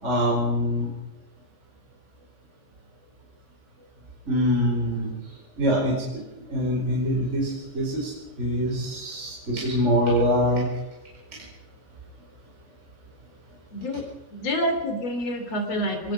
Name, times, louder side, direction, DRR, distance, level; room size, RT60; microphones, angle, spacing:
voice 1, 0.0-0.9 4.3-5.1 5.6-8.1 8.4-10.7, equal, 20° right, -3 dB, 5.4 m, -24 dB
voice 2, 13.7-14.0 14.3-16.1, equal, 60° left, 5 dB, 4.2 m, -27 dB
24.5 x 19.5 x 5.7 m, 0.96 s
omnidirectional pair, 3.3 m